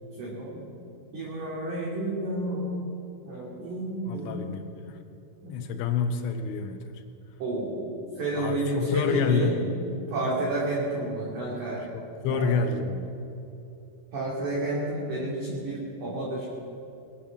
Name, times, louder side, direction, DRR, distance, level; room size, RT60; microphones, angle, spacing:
voice 1, 0.2-0.6 1.1-2.8 3.2-4.5 5.4-5.6 7.4-9.6 10.1-11.9 12.2-12.6 14.1-16.5, right 1 dB, 45° right, -6 dB, 3.4 m, -30 dB
voice 2, 4.1-5.0 5.5-6.8 8.4-9.7 11.9-13.2, left 5 dB, 85° left, 5 dB, 3.4 m, -28 dB
21.0 x 8.8 x 7.4 m, 2.7 s
omnidirectional pair, 5.5 m